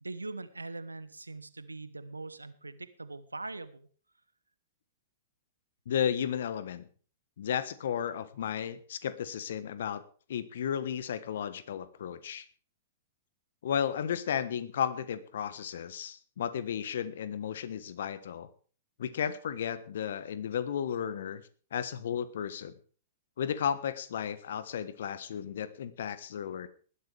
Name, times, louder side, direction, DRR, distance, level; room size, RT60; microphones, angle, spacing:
voice 1, 0.0-3.9, right 3 dB, 85° right, 14 dB, 1.1 m, -42 dB
voice 2, 5.9-6.9 7.4-10.0 10.3-12.4 13.6-18.5 19.0-21.4 21.7-22.7 23.4-26.7, left 8 dB, 60° left, 14 dB, 1.3 m, -34 dB
19.5 x 11.5 x 3.5 m, 0.40 s
figure-of-eight pair, 105°, 0 cm